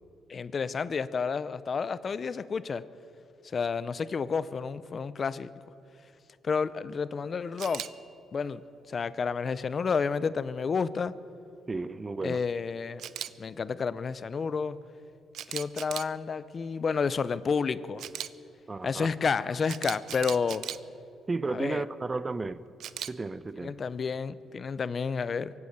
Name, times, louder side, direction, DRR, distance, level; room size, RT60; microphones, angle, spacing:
voice 1, 0.3-2.8 3.5-5.5 6.4-7.8 8.3-8.6 8.9-11.1 12.2-13.0 13.4-14.8 15.5-18.1 18.8-20.7 21.5-21.8 23.6-25.5, left 5 dB, 45° left, 0.6 m, -30 dB
Camera, 7.6-7.9 13.0-13.3 15.3-16.1 18.0-18.3 19.7-20.8 22.8-23.1, right 10 dB, 75° right, 0.5 m, -37 dB
sound 1, 7.7-10.8 20.1-20.9, left 4 dB, 85° left, 2.5 m, -55 dB
voice 2, 11.7-12.4 18.7-19.1 21.3-22.6 23.1-23.7, right 3 dB, 25° right, 0.6 m, -33 dB
23.5 x 8.3 x 6.5 m
cardioid pair, 90°, 0 cm